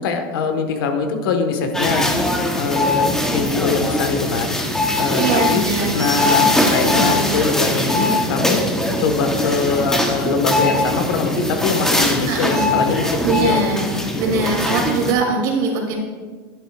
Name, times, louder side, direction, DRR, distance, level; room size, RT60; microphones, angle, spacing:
voice 1, 0.0-2.1 2.5-4.6 4.9-5.6 5.9-8.7 9.0-13.6 14.1-14.6, left 4 dB, 80° left, 6 dB, 1.4 m, -22 dB
sound 1, 1.7-15.1, left 1 dB, 5° left, 1.0 m, -21 dB
voice 2, 5.2-7.4 12.3-12.8 13.2-13.9 14.2-15.9, right 4 dB, 65° right, -1 dB, 2.7 m, -22 dB
11.0 x 10.5 x 2.4 m, 1.5 s
supercardioid pair, 140°, 12 cm